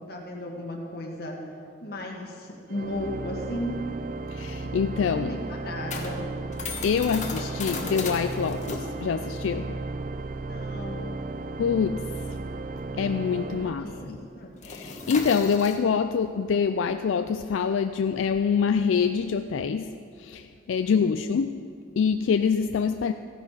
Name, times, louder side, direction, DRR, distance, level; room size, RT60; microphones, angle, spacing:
voice 1, 0.0-1.4 1.8-3.8 4.9-6.3 10.5-11.1 13.3-13.4 13.8-14.5 20.9-21.1, left 1 dB, 55° left, 0 dB, 1.8 m, -35 dB
Organ, 2.7-14.5, right 3 dB, 45° right, 0.5 m, -35 dB
voice 2, 4.3-5.4 6.8-9.7 11.6-12.0 13.0-14.2 14.6-21.6 22.0-23.1, left 6 dB, 85° left, 8 dB, 0.4 m, -25 dB
sound 1, 4.4-13.3 13.6-13.9 14.2-19.9, left 4 dB, 40° left, 1.3 m, -39 dB
15.0 x 10.5 x 4.1 m, 2.3 s
head